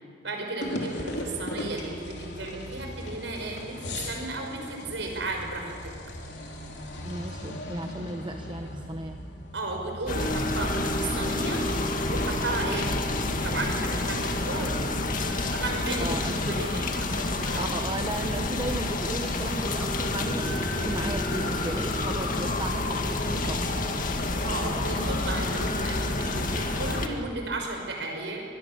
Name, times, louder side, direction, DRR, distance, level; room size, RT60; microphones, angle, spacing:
voice 1, 0.2-5.9 9.5-11.7 12.1-12.9 13.4-15.0 15.5-17.6 24.4-28.4, right 2 dB, 75° right, 2 dB, 5.7 m, -34 dB
sound 1, 0.6-17.0, left 1 dB, 65° left, 3.6 m, -39 dB
voice 2, 7.0-9.2 16.0-16.9 17.6-23.8, right 2 dB, 25° right, 6 dB, 0.8 m, -35 dB
sound 2, 10.1-27.1, left 2 dB, 50° left, 1.9 m, -29 dB
sound 3, 10.1-18.3 19.6-26.3, right 1 dB, 25° left, 2.4 m, -39 dB
25.0 x 21.0 x 7.2 m, 2.1 s
head